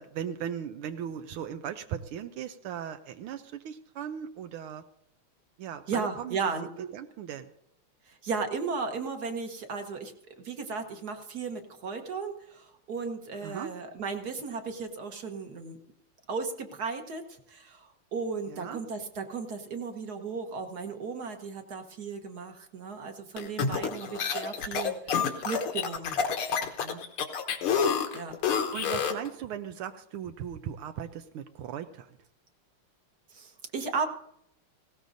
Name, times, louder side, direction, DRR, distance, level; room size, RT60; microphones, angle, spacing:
voice 1, 0.0-4.8 5.6-6.4 6.8-7.5 13.4-13.7 18.5-18.8 28.7-32.2, right 9 dB, 80° right, 8 dB, 1.6 m, -38 dB
voice 2, 5.9-6.7 8.1-15.8 16.3-26.2 26.8-27.0 28.1-28.4 33.3-34.1, right 5 dB, 50° right, 5 dB, 1.5 m, -35 dB
sound 1, 23.4-29.3, left 6 dB, 80° left, 2.1 m, -28 dB
18.5 x 17.0 x 2.7 m, 0.73 s
omnidirectional pair, 2.4 m